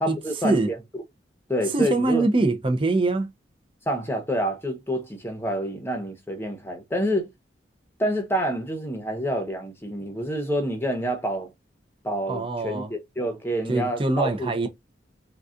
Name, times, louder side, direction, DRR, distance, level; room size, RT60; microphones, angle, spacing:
voice 1, 0.0-1.0 1.5-2.3 3.9-7.3 8.0-11.5 12.0-14.7, equal, 10° left, 0.8 m, -28 dB
voice 2, 1.7-3.3 12.3-12.9 13.7-14.7, right 2 dB, 30° right, 0.5 m, -23 dB
3.8 x 2.3 x 2.5 m
head